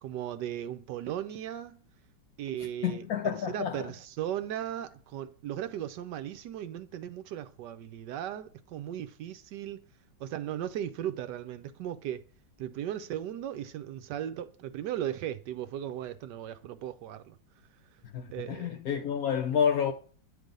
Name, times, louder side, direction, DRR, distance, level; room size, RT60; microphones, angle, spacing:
voice 1, 0.0-1.9 2.4-3.0 3.5-9.8 10.2-12.2 12.6-17.4 18.3-18.7, right 11 dB, 70° right, 1.0 m, -37 dB
voice 2, 2.8-3.9 18.1-19.9, left 8 dB, 70° left, 0.9 m, -29 dB
9.0 x 3.4 x 5.0 m
omnidirectional pair, 2.2 m